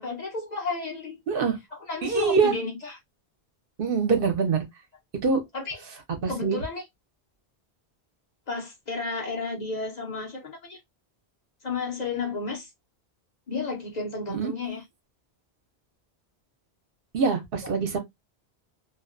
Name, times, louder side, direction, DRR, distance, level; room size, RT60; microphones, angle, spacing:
voice 1, 0.0-1.2 1.7-3.0 5.5-5.8 6.3-6.8 8.5-10.8 11.6-12.7 13.5-14.8, left 3 dB, 45° left, 0.7 m, -32 dB
voice 2, 1.3-1.6 2.0-2.5 3.8-4.6 5.2-5.4 6.2-6.6 14.3-14.5 17.1-18.0, right 5 dB, 60° right, 0.9 m, -24 dB
2.3 x 2.1 x 2.4 m
omnidirectional pair, 1.1 m